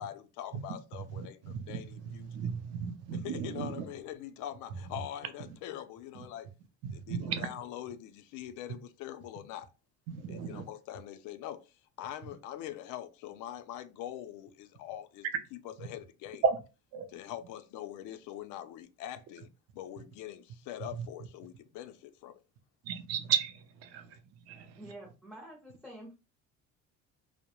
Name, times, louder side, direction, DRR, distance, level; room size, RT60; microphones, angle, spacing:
voice 1, 0.0-2.4 3.2-6.5 6.9-9.7 10.3-15.3 15.6-16.4 17.1-22.4, left 12 dB, 80° left, 0.5 m, -43 dB
voice 2, 1.1-3.9 5.5-5.6 6.8-7.5 10.1-10.6 15.8-15.9 16.4-16.6 16.9-17.1 21.0-21.1 22.8-24.1, right 7 dB, 55° right, 0.5 m, -34 dB
voice 3, 24.8-26.2, right 1 dB, ahead, 0.5 m, -48 dB
2.2 x 2.0 x 2.9 m
cardioid pair, 150°, 30 cm